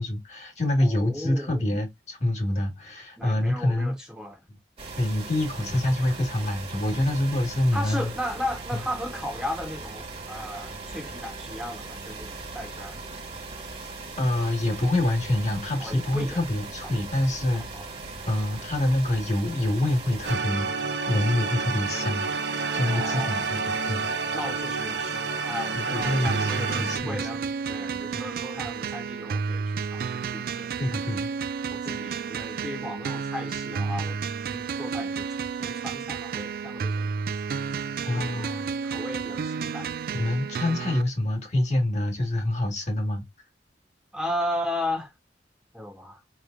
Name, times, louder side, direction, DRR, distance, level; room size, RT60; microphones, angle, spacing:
voice 1, 0.0-3.9 5.0-8.1 14.2-17.7 18.3-24.1 25.7-27.3 28.1-28.2 30.8-31.3 38.0-38.7 40.1-43.2, left 1 dB, 40° left, 1.6 m, -26 dB
voice 2, 0.8-1.6 3.2-4.4 7.7-13.0 15.8-16.4 17.7-17.9 22.9-23.5 24.3-30.7 31.7-34.2 34.5-37.1 38.1-38.5 38.9-39.9 44.1-45.1 45.7-46.2, left 1 dB, 5° right, 1.2 m, -35 dB
sound 1, 4.8-20.4, right 3 dB, 30° right, 1.4 m, -39 dB
sound 2, 20.2-27.0, right 4 dB, 70° right, 0.9 m, -29 dB
sound 3, 26.0-41.0, right 5 dB, 55° right, 0.3 m, -31 dB
5.0 x 3.1 x 2.5 m
head